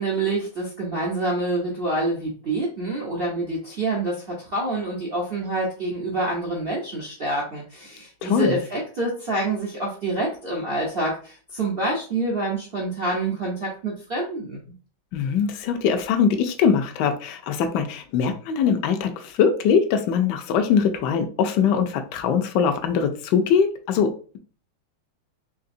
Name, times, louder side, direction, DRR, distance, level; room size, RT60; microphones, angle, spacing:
voice 1, 0.0-14.6, right 2 dB, 80° right, -4 dB, 0.5 m, -27 dB
voice 2, 8.2-8.6 15.1-24.4, left 7 dB, 70° left, 7 dB, 1.0 m, -22 dB
3.8 x 3.2 x 2.6 m, 0.39 s
omnidirectional pair, 2.2 m